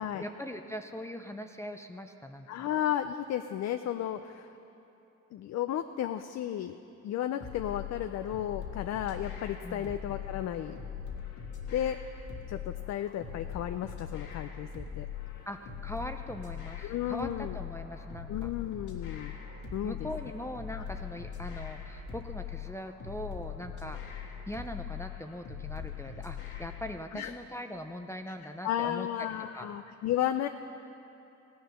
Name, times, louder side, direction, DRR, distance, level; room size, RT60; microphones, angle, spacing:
voice 1, 0.2-2.7 9.6-9.9 15.5-18.5 19.8-29.1 29.5-29.7, left 1 dB, 10° left, 5 dB, 0.6 m, -41 dB
voice 2, 2.5-4.5 5.3-6.8 7.0-10.8 11.7-12.0 12.5-15.1 16.8-17.6 18.3-19.3 19.7-20.1 20.7-20.8 27.1-27.3 28.6-30.5, left 11 dB, 60° left, 9 dB, 0.5 m, -33 dB
sound 1, 7.4-27.0, left 8 dB, 80° left, 1.7 m, -41 dB
15.5 x 10.0 x 6.3 m, 2.9 s
cardioid pair, 90°, 30 cm